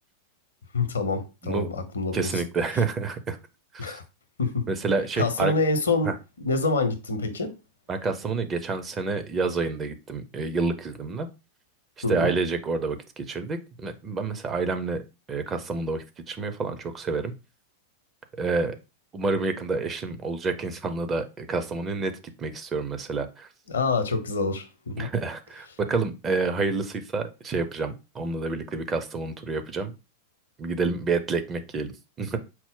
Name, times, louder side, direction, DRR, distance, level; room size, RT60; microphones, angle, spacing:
voice 1, 0.7-2.4 3.8-4.0 4.4-4.6 5.2-6.1 6.4-7.5 12.0-12.3 23.7-25.1, left 3 dB, 70° left, 0.7 m, -26 dB
voice 2, 2.1-3.4 3.7-4.0 4.7-5.5 6.0-6.1 7.9-11.3 12.1-15.0 15.3-17.3 18.4-18.8 19.1-22.1 22.4-23.5 25.0-29.9 30.6-32.4, right 4 dB, 25° right, 0.5 m, -28 dB
4.4 x 2.0 x 3.7 m
figure-of-eight pair, 90°, 0 cm